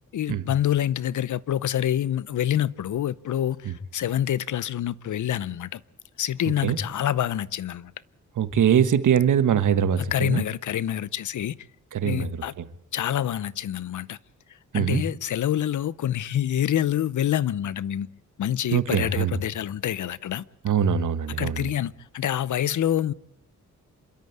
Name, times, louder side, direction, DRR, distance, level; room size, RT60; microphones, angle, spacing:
voice 1, 0.1-5.8 6.2-7.9 10.0-11.6 12.0-12.5 12.9-14.2 14.7-18.1 18.4-20.4 21.4-23.1, left 11 dB, 75° left, 0.8 m, -26 dB
voice 2, 8.4-10.4 11.9-12.7 14.7-15.0 18.7-19.4 20.6-21.7, right 8 dB, 75° right, 1.4 m, -23 dB
27.0 x 13.0 x 9.7 m
wide cardioid pair, 175°, 30 cm